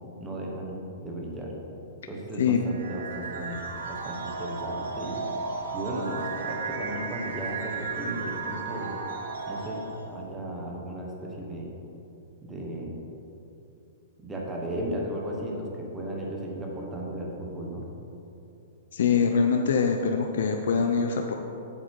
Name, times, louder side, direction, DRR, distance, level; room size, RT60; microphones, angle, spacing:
voice 1, 0.2-1.5 2.1-5.3 5.7-9.0 9.5-11.7 12.4-13.0 14.2-17.8, right 1 dB, 10° right, -2 dB, 1.1 m, -35 dB
sound 1, 2.7-10.3, right 4 dB, 80° right, 1.1 m, -34 dB
voice 2, 18.9-21.3, left 6 dB, 70° left, 4 dB, 0.6 m, -24 dB
8.2 x 7.5 x 4.6 m, 2.9 s
hypercardioid pair, 175°, 0 cm